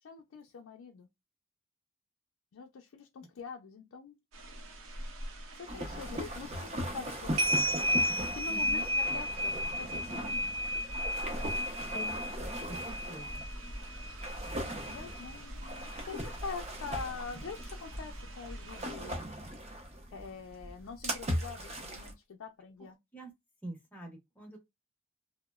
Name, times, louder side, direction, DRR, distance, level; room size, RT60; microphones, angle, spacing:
voice 1, 0.0-1.1 2.5-4.2 5.5-7.7 8.2-10.5 14.8-19.5 20.1-23.0, left 5 dB, 80° left, 0.4 m, -45 dB
sound 1, 4.3-18.9, equal, 80° right, 0.7 m, -36 dB
sound 2, 5.7-22.1, equal, 30° right, 0.6 m, -39 dB
voice 2, 8.4-8.8 12.7-13.4 22.8-23.3 23.6-24.6, right 2 dB, 10° left, 0.7 m, -46 dB
sound 3, 11.9-20.5 21.2-21.3, left 3 dB, 55° left, 0.8 m, -55 dB
2.9 x 2.0 x 2.2 m
head